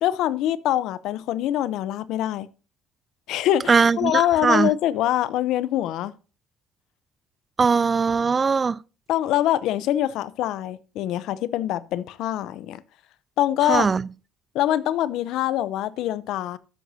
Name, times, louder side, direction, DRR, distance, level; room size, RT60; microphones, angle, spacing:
voice 1, 0.0-2.5 3.3-6.1 9.1-12.8 13.4-13.9 14.5-16.6, left 12 dB, 70° left, 0.7 m, -24 dB
voice 2, 3.7-4.7 7.6-8.8 13.7-14.1, right 5 dB, 30° right, 0.4 m, -20 dB
12.5 x 9.3 x 2.7 m
supercardioid pair, 95°, 0 cm